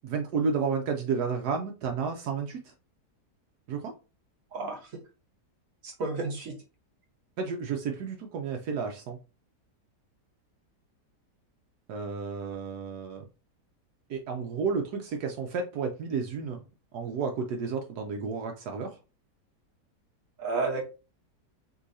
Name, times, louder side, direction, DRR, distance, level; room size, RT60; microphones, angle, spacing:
voice 1, 0.0-2.7 3.7-3.9 7.4-9.2 11.9-13.3 14.1-16.6 16.9-19.0, right 5 dB, 75° right, 3 dB, 1.2 m, -31 dB
voice 2, 5.8-6.6 20.4-20.8, right 3 dB, 55° right, 1 dB, 1.5 m, -31 dB
6.6 x 2.7 x 2.7 m, 0.31 s
omnidirectional pair, 1.8 m